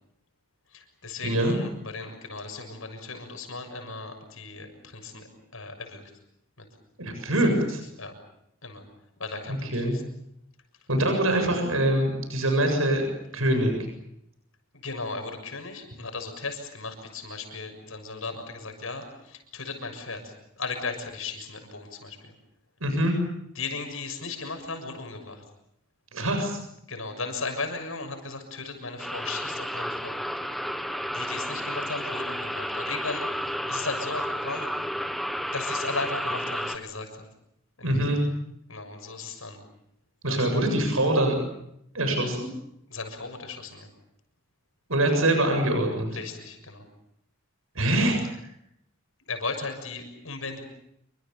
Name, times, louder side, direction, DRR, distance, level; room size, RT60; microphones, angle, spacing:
voice 1, 0.7-5.3 5.5-6.0 6.6-6.7 7.3-7.5 8.0-8.2 8.6-8.8 9.2-10.0 14.7-22.3 23.6-25.4 26.9-30.2 31.1-34.7 35.5-37.3 37.8-38.2 38.7-39.6 40.3-40.6 42.9-43.9 46.1-46.8 49.3-50.6, left 3 dB, 75° left, 6 dB, 6.8 m, -36 dB
voice 2, 1.2-1.5 7.0-7.8 9.7-10.0 10.9-13.8 22.8-23.1 26.1-26.6 37.8-38.2 40.2-41.4 41.9-42.5 44.9-46.1 47.8-48.2, right 1 dB, 80° right, 5 dB, 7.4 m, -24 dB
sound 1, 29.0-36.8, equal, ahead, 1.4 m, -31 dB
28.5 x 25.0 x 7.1 m, 0.78 s
head